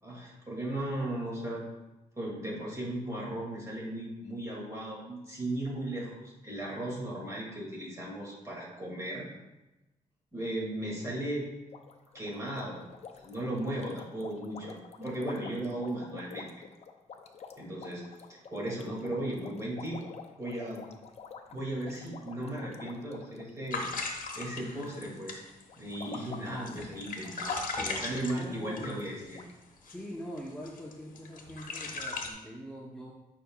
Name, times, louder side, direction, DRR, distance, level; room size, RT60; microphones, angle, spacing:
voice 1, 0.0-1.6 2.2-9.2 10.3-11.5 12.1-12.8 13.2-16.5 17.6-18.0 18.5-20.0 20.4-20.8 21.5-23.8 24.4-25.4 25.8-29.4, right 1 dB, 20° right, -4 dB, 2.3 m, -36 dB
sound 1, 11.7-24.5 24.7-25.2 25.7-27.6 27.9-28.0 28.4-28.5 29.0-29.1 29.3-29.5, left 6 dB, 50° left, 0.6 m, -48 dB
sound 2, 23.7-29.4 29.9-30.0 30.4-32.3, left 3 dB, 70° left, 0.9 m, -37 dB
voice 2, 28.3-28.9 29.8-33.1, equal, 5° left, -5 dB, 0.8 m, -43 dB
8.4 x 5.7 x 2.4 m, 1.0 s
wide cardioid pair, 125°, 14 cm